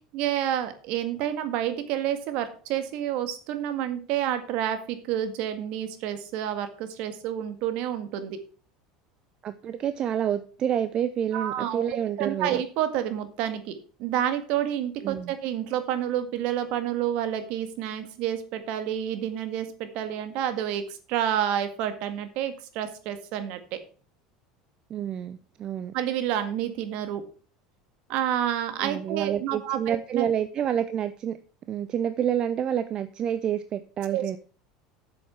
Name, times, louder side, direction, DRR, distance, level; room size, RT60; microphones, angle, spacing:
voice 1, 0.1-8.4 11.3-11.8 12.2-20.8 21.1-23.8 25.9-27.2 28.1-30.3 34.1-34.4, right 10 dB, 65° right, 9 dB, 1.8 m, -29 dB
voice 2, 9.4-12.6 15.0-15.3 24.9-25.9 28.8-31.4 31.7-34.4, right 9 dB, 40° right, 12 dB, 0.7 m, -28 dB
8.3 x 7.1 x 5.7 m, 0.40 s
hypercardioid pair, 90°, 2 cm